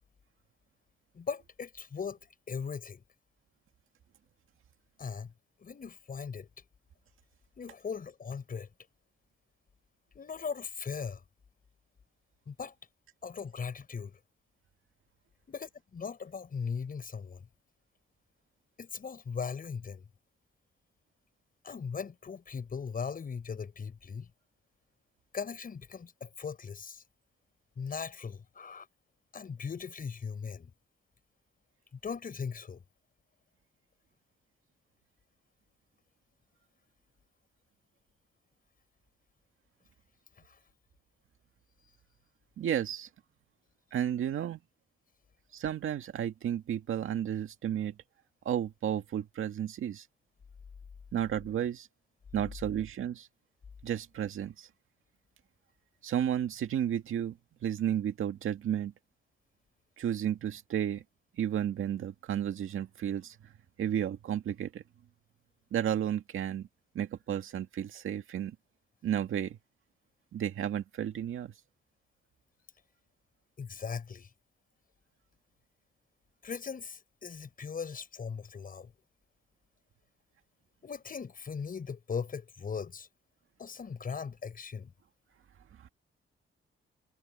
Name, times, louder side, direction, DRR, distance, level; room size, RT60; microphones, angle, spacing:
voice 1, 1.1-2.2 2.5-3.0 5.0-5.3 5.6-6.5 7.6-8.7 10.1-11.2 12.5-12.7 13.2-14.2 15.5-17.4 18.8-20.0 21.6-24.3 25.3-27.0 27.8-28.9 29.3-30.7 32.0-32.8 40.4-40.6 73.6-74.3 76.4-78.9 80.8-83.1 83.6-84.9, left 6 dB, 45° left, 6.3 m, -39 dB
voice 2, 42.6-43.1 43.9-44.6 45.5-48.0 48.5-50.1 51.1-51.9 52.3-53.3 53.8-54.7 56.0-57.4 57.6-58.9 60.0-61.0 61.4-63.4 63.8-64.8 65.7-66.7 66.9-68.6 69.0-69.6 70.3-71.5 85.8-85.9, right 10 dB, 80° right, 2.0 m, -32 dB
wide cardioid pair, 130°, 21 cm